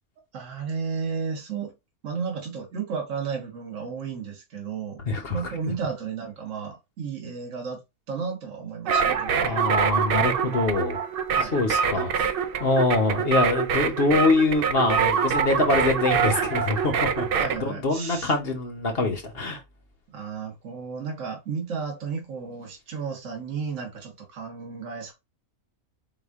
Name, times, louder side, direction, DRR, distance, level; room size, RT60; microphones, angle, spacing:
voice 1, 0.3-1.7 2.0-5.0 5.3-7.8 8.1-9.6 11.3-11.6 17.4-18.3 20.1-25.1, right 5 dB, 60° right, 1.5 m, -33 dB
voice 2, 5.1-5.4 9.4-11.0 11.5-12.3 12.6-19.6, left 3 dB, 45° left, 1.0 m, -24 dB
sound 1, 8.9-17.6, right 6 dB, 80° right, 0.5 m, -25 dB
4.9 x 2.4 x 3.5 m
omnidirectional pair, 1.5 m